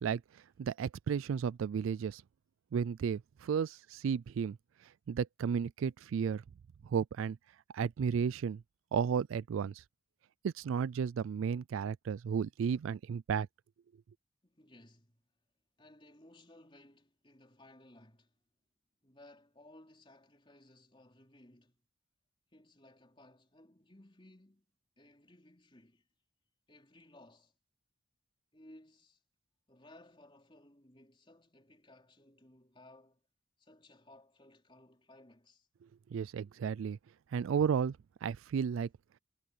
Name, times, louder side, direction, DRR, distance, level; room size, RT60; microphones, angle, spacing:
voice 1, 0.0-2.2 2.7-4.6 5.1-6.4 6.8-7.4 7.7-8.6 8.9-9.8 10.4-13.5 36.1-37.0 37.3-38.9, right 7 dB, 75° right, 0.3 m, -33 dB
voice 2, 14.4-15.2 15.8-18.4 19.0-21.8 22.5-24.7 25.0-26.1 26.7-27.5 28.5-29.2 29.7-33.2 33.6-35.7, left 1 dB, 25° left, 3.8 m, -60 dB
head